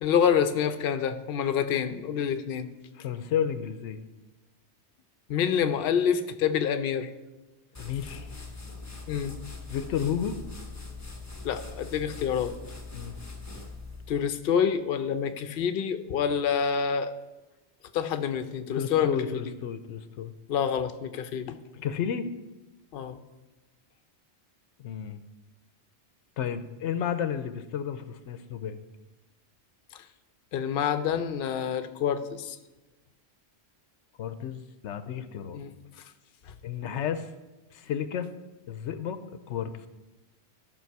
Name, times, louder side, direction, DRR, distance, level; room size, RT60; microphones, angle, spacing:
voice 1, 0.0-2.7 5.3-7.1 9.1-9.4 11.4-12.6 14.1-17.1 17.9-19.2 20.5-21.6 22.9-23.2 30.5-32.6 35.5-35.7, left 8 dB, 60° left, 9 dB, 0.8 m, -27 dB
voice 2, 3.0-4.0 7.8-8.3 9.7-10.4 12.9-13.2 18.7-20.3 21.7-22.2 24.8-25.2 26.4-28.8 34.2-35.6 36.6-37.3 37.7-38.3 38.7-39.7, left 8 dB, 85° left, 11 dB, 0.9 m, -32 dB
sound 1, 7.7-14.3, left 3 dB, 15° left, 0.9 m, -42 dB
13.0 x 6.1 x 4.6 m, 1.1 s
omnidirectional pair, 1.2 m